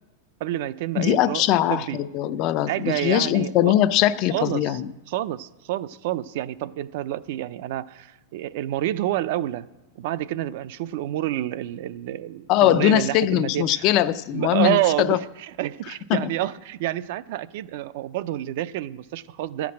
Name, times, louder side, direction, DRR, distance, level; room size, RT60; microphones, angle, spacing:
voice 1, 0.4-1.4 1.7-2.0 2.7-3.5 4.3-4.8 5.1-9.7 10.0-13.9 14.3-19.7, right 14 dB, 50° right, 15 dB, 0.4 m, -28 dB
voice 2, 1.0-4.9 12.5-15.2 16.1-16.3, left 12 dB, 35° left, 14 dB, 0.4 m, -21 dB
12.0 x 5.9 x 8.5 m, 1.1 s
supercardioid pair, 170°, 0 cm